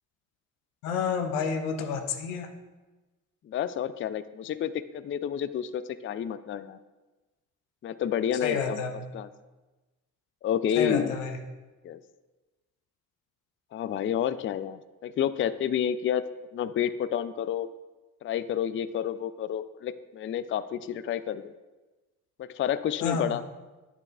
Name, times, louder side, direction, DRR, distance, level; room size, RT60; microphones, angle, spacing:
voice 1, 0.8-2.6 8.4-9.1 10.8-11.4 23.0-23.4, left 5 dB, 90° left, 5 dB, 0.7 m, -30 dB
voice 2, 3.4-6.8 7.8-8.8 9.1-9.3 10.4-11.2 11.8-12.0 13.7-16.2 16.5-17.7 18.2-21.5 22.4-23.4, left 9 dB, 35° left, 14 dB, 0.4 m, -30 dB
9.5 x 6.9 x 2.5 m, 1.2 s
hypercardioid pair, 40°, 39 cm